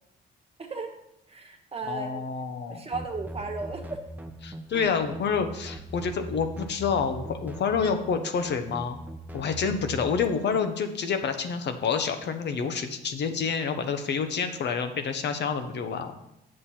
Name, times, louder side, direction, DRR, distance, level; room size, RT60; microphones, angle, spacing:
voice 1, 0.6-0.9 1.3-2.3 2.6-4.0, right 3 dB, 30° right, 4 dB, 1.4 m, -35 dB
voice 2, 1.9-2.8 4.4-9.0 9.3-16.1, left 6 dB, 60° left, 7 dB, 0.9 m, -28 dB
sound 1, 2.9-10.2, right 1 dB, 10° right, 0.8 m, -40 dB
7.5 x 6.5 x 4.3 m, 0.84 s
cardioid pair, 90°, 20 cm